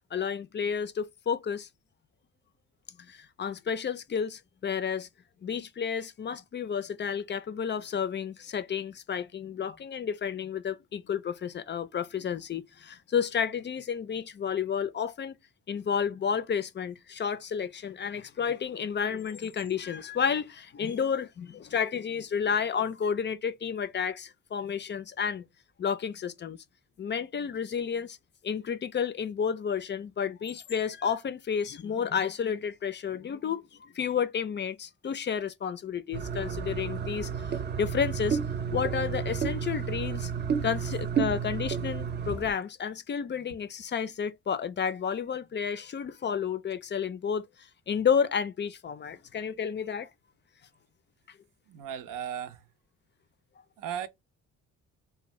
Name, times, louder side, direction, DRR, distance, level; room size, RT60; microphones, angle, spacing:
voice 1, 0.1-1.7 3.0-5.1 5.4-15.4 15.7-25.4 25.8-26.6 27.0-28.2 28.4-38.4 38.7-40.3 40.6-50.1, left 7 dB, 35° left, 0.4 m, -31 dB
sound 1, 36.1-42.5, right 7 dB, 35° right, 0.5 m, -31 dB
voice 2, 51.7-52.6 53.8-54.1, right 9 dB, 80° right, 0.6 m, -36 dB
2.6 x 2.1 x 3.0 m
cardioid pair, 75°, 32 cm